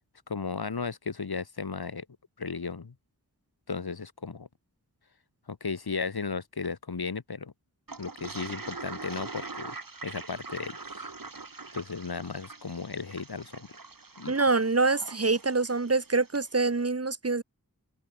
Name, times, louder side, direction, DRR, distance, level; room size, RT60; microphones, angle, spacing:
voice 1, 0.3-2.1 2.4-2.9 3.7-4.5 5.5-7.5 8.0-9.7 10.0-10.7 11.7-13.7 14.2-14.3, left 5 dB, 80° left, 2.9 m, -35 dB
Toilet flush, 7.9-16.5, right 3 dB, 65° right, 6.3 m, -43 dB
voice 2, 14.3-17.4, right 3 dB, 40° right, 1.5 m, -25 dB
open air
wide cardioid pair, 70°, 37 cm